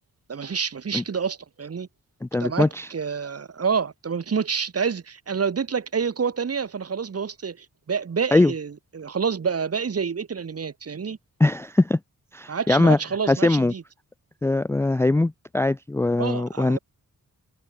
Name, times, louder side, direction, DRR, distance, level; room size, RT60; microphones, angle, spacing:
voice 1, 0.3-1.9 2.4-11.2 12.5-13.8 16.2-16.8, right 6 dB, 45° right, 5.4 m, -28 dB
voice 2, 2.2-2.9 8.3-8.5 11.4-12.0 12.3-13.0 13.3-13.7 14.4-16.8, left 2 dB, 10° left, 0.4 m, -21 dB
wide cardioid pair, 175°, 34 cm